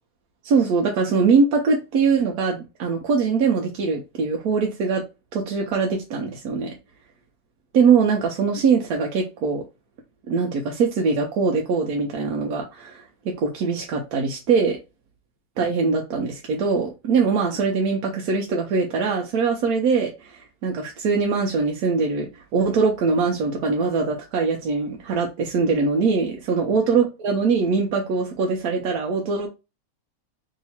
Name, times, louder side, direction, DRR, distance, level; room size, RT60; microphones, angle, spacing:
voice 1, 0.4-5.0 5.3-6.7 7.7-9.6 10.3-14.8 15.6-29.5, right 5 dB, 70° right, 1.0 m, -22 dB
3.1 x 2.8 x 4.2 m
omnidirectional pair, 1.9 m